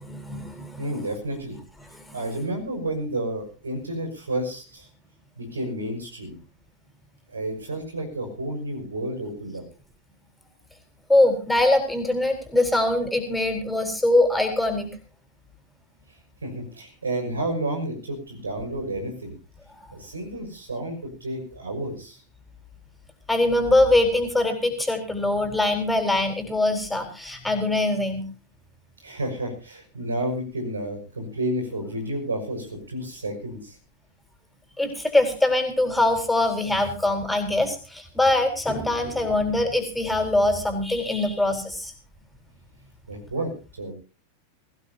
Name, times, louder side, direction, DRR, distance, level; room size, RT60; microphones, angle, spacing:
voice 1, 0.0-0.9 1.9-2.2 11.1-14.9 23.3-28.3 34.8-41.9, left 2 dB, 5° left, 5 dB, 4.4 m, -23 dB
voice 2, 0.8-1.6 2.1-4.9 5.4-6.4 7.3-9.6 16.4-19.4 19.9-22.2 29.0-33.8 43.1-43.9, right 1 dB, 80° right, 3 dB, 6.1 m, -31 dB
22.5 x 16.0 x 2.8 m, 0.35 s
figure-of-eight pair, 90°, 0 cm